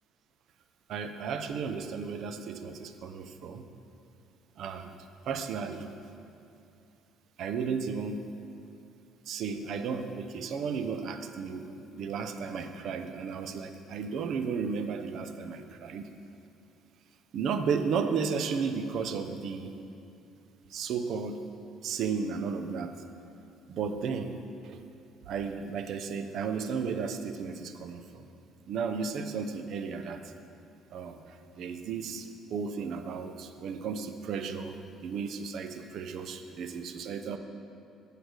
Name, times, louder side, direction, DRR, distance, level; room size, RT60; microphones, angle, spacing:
voice 1, 0.9-3.6 4.6-5.0 5.3-5.9 7.4-8.2 9.3-16.1 17.3-19.7 20.7-21.4 21.8-23.0 23.7-24.4 24.6-24.9 25.3-28.3 28.7-30.3 30.9-37.4, right 5 dB, 60° right, 8 dB, 0.5 m, -34 dB
8.0 x 4.9 x 6.5 m, 2.6 s
cardioid pair, 115°, 0 cm